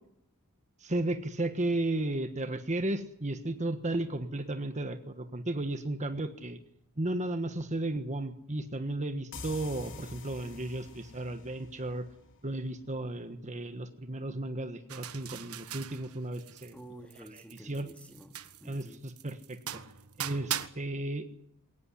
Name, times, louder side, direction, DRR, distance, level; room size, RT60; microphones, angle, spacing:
voice 1, 0.8-6.6 7.0-12.1 12.4-16.8 17.3-17.9 18.6-19.6 20.2-21.2, right 2 dB, 30° right, 8 dB, 1.4 m, -34 dB
sound 1, 9.3-12.8, left 3 dB, 60° left, 3.5 m, -47 dB
sound 2, 14.9-16.8 17.1-20.7, right 10 dB, 75° right, 1.4 m, -40 dB
voice 2, 16.7-19.0, right 1 dB, 5° left, 6 dB, 2.4 m, -51 dB
22.0 x 19.0 x 9.9 m, 0.72 s
head